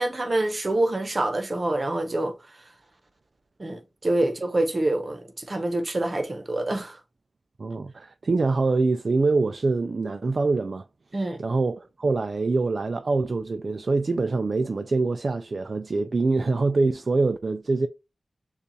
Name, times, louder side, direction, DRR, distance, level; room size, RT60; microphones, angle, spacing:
voice 1, 0.0-2.3 3.6-7.0 11.1-11.4, right 1 dB, 45° right, 0.9 m, -26 dB
voice 2, 7.6-10.9 11.4-17.9, right 3 dB, 60° right, 0.3 m, -24 dB
6.7 x 2.4 x 2.8 m
wide cardioid pair, 65°, 0 cm